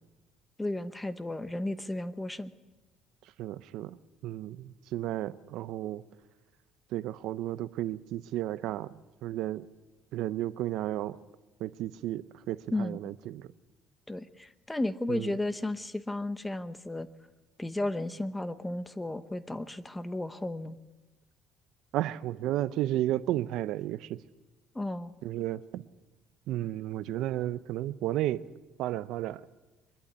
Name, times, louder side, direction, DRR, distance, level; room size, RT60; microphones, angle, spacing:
voice 1, 0.6-2.5 12.7-13.0 14.1-17.1 17.6-20.8 24.7-25.1, left 1 dB, 10° left, 0.9 m, -34 dB
voice 2, 3.4-4.0 4.2-6.0 6.9-9.7 10.1-11.2 11.6-13.5 15.1-15.3 21.9-24.2 25.2-25.9 26.5-28.5 28.8-29.4, right 14 dB, 75° right, 0.6 m, -33 dB
23.0 x 11.5 x 9.6 m
cardioid pair, 115°, 0 cm